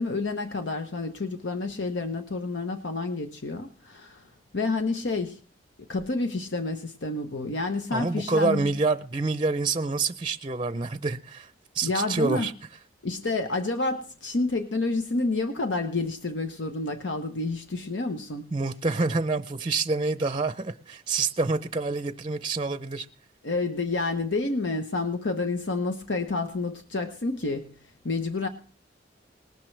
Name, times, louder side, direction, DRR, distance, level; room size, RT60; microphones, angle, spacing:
voice 1, 0.0-4.2 4.5-5.4 5.9-8.7 11.8-12.5 13.0-18.4 23.4-27.7 28.0-28.5, left 3 dB, 85° left, 1.0 m, -29 dB
voice 2, 7.9-11.5 11.7-12.5 18.5-23.1, right 3 dB, 30° right, 0.5 m, -27 dB
19.5 x 12.0 x 3.3 m
head